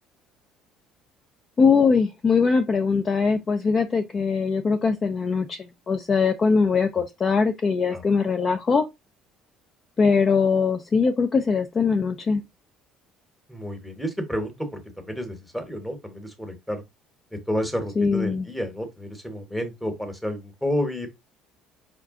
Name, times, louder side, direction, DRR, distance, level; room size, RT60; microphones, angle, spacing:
voice 1, 1.6-8.9 10.0-12.4 18.0-18.5, left 5 dB, 25° left, 0.4 m, -21 dB
voice 2, 13.5-16.8 17.3-21.1, equal, 5° left, 1.0 m, -30 dB
4.8 x 2.2 x 3.6 m
cardioid pair, 135°, 0 cm